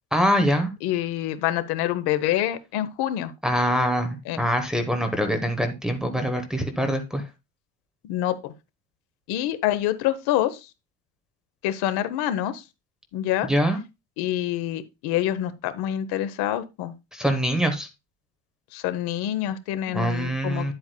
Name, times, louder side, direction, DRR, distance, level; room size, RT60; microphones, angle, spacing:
voice 1, 0.1-0.7 3.4-7.2 13.4-13.8 17.1-17.9 19.9-20.7, equal, ahead, 0.9 m, -24 dB
voice 2, 0.8-3.3 4.3-4.4 8.0-8.5 9.3-10.7 11.6-12.6 13.1-13.5 14.2-16.9 18.7-20.7, left 12 dB, 80° left, 0.9 m, -26 dB
9.7 x 7.8 x 2.2 m
cardioid pair, 160°, 38 cm